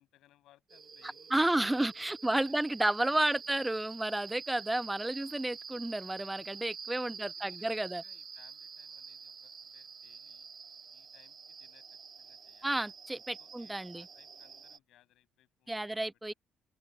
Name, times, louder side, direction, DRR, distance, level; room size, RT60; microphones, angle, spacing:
voice 1, 0.0-2.6 2.8-3.5 5.1-5.5 7.0-10.5 10.9-12.8 13.4-15.7 16.0-16.4, left 14 dB, 65° left, 5.6 m, -67 dB
sound 1, 0.7-14.8, right 6 dB, 45° right, 1.7 m, -48 dB
voice 2, 1.3-8.0 12.6-14.0 15.7-16.3, right 1 dB, 10° right, 0.3 m, -31 dB
hypercardioid pair, 50°, 0 cm